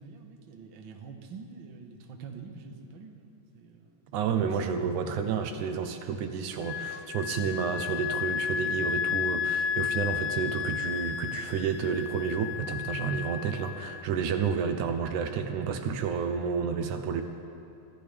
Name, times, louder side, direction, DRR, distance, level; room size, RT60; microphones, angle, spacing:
voice 1, 0.0-4.7 15.7-15.8, right 5 dB, 60° right, 2 dB, 1.3 m, -46 dB
voice 2, 4.1-17.2, right 6 dB, 75° right, 6 dB, 2.1 m, -30 dB
Wind instrument woodwind instrument, 6.6-14.1, left 8 dB, 85° left, 2.2 m, -32 dB
24.5 x 14.0 x 3.4 m, 2.6 s
omnidirectional pair, 3.7 m